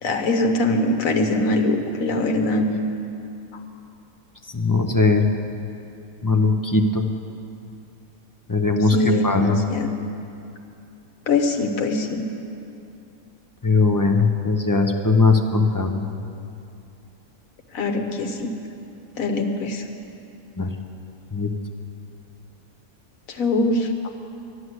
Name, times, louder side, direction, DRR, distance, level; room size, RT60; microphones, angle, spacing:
voice 1, 0.0-2.8 8.8-9.9 11.3-12.3 17.7-18.5 19.2-19.9 23.3-23.9, left 2 dB, 70° left, 4 dB, 1.5 m, -22 dB
voice 2, 4.5-5.3 6.2-7.1 8.5-9.6 13.6-16.1 20.6-20.7 21.3-21.5, left 3 dB, 20° left, 3 dB, 0.5 m, -19 dB
11.5 x 11.0 x 8.0 m, 2.6 s
omnidirectional pair, 1.5 m